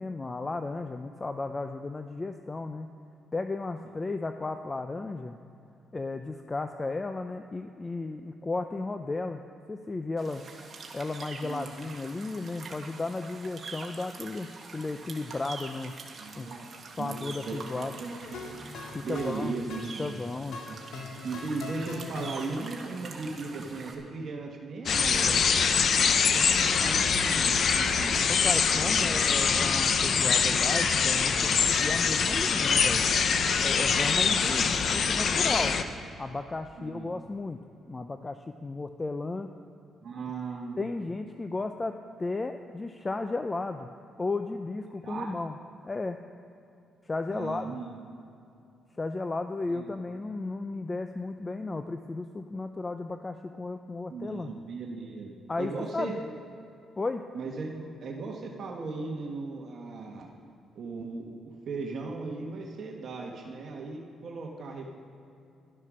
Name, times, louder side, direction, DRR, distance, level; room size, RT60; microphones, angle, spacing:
voice 1, 0.0-2.9 3.3-5.4 5.9-9.4 9.7-10.4 10.9-16.0 16.4-16.6 17.0-17.9 18.9-19.6 20.0-20.6 28.3-33.0 33.6-35.8 36.2-37.6 37.9-39.5 40.8-43.9 44.2-45.6 45.8-46.2 47.0-47.8 49.0-54.5 55.5-56.2 57.0-57.2, left 3 dB, 25° left, 7 dB, 0.5 m, -34 dB
sound 1, 10.2-23.9, right 4 dB, 40° right, 1.8 m, -45 dB
voice 2, 11.4-11.8 16.2-16.7 17.0-18.4 19.0-20.2 20.7-20.8 21.2-25.6 26.3-28.2 28.7-29.3 36.8-37.1 40.0-40.9 45.0-45.3 47.3-48.0 49.7-49.9 54.1-56.3 57.3-60.3 60.7-64.9, right 3 dB, 55° right, 0 dB, 1.3 m, -37 dB
sound 2, 18.2-22.9, left 3 dB, 75° left, 1.9 m, -42 dB
sound 3, 24.9-35.8, left 6 dB, 55° left, 0.7 m, -24 dB
12.0 x 10.5 x 6.2 m, 2.7 s
cardioid pair, 90°, 0 cm